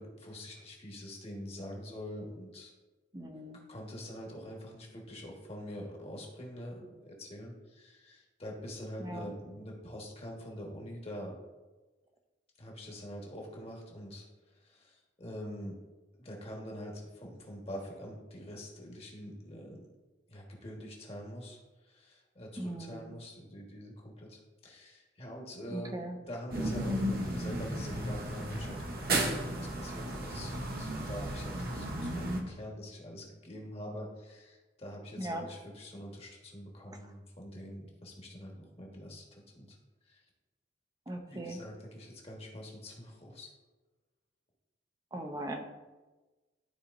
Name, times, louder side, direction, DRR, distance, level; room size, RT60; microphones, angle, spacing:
voice 1, 0.0-2.7 3.7-11.3 12.6-14.3 14.6-15.8 16.1-19.8 20.3-39.8 40.0-40.2 41.3-43.5, equal, 30° left, -1 dB, 1.4 m, -45 dB
voice 2, 3.1-3.6 9.0-9.3 22.6-23.1 25.7-26.2 35.2-35.5 41.1-41.6 45.1-45.7, right 1 dB, 20° right, 5 dB, 0.6 m, -39 dB
sound 1, 26.5-32.4, right 1 dB, 50° right, 0.9 m, -34 dB
12.0 x 4.3 x 2.6 m, 1.2 s
head